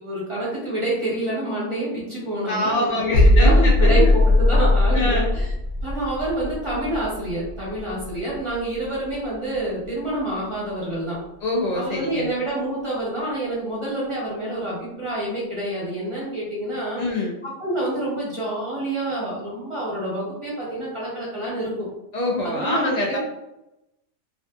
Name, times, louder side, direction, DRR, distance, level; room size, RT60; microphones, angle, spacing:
voice 1, 0.0-5.5 5.8-11.2 11.7-17.0 17.4-21.7 22.4-23.2, right 1 dB, 30° right, -7 dB, 0.9 m, -27 dB
voice 2, 2.5-4.2 4.9-5.3 11.4-12.3 17.0-17.4 22.1-23.2, left 2 dB, 85° left, -1 dB, 0.3 m, -25 dB
sound 1, 3.1-8.8 9.1-9.3, left 1 dB, 70° left, 0.8 m, -19 dB
2.5 x 2.5 x 2.3 m, 0.89 s
omnidirectional pair, 1.3 m